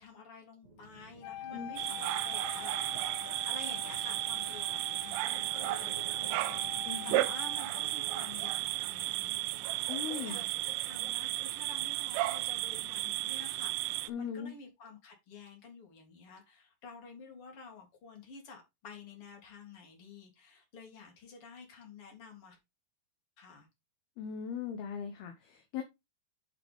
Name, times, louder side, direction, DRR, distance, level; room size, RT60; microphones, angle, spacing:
voice 1, 0.0-3.0 3.4-6.4 6.7-9.4 10.1-22.6 23.4-23.7, left 4 dB, 35° left, 3.6 m, -51 dB
sound 1, 0.6-12.5, right 1 dB, 60° right, 0.4 m, -55 dB
Wind instrument woodwind instrument, 1.2-8.2, left 10 dB, 90° left, 3.0 m, -46 dB
sound 2, 1.8-14.1, right 18 dB, 80° right, 2.8 m, -34 dB
voice 2, 6.9-7.2 9.9-10.4 14.1-14.5 24.2-25.8, left 7 dB, 70° left, 2.8 m, -39 dB
9.4 x 6.7 x 3.6 m
omnidirectional pair, 5.2 m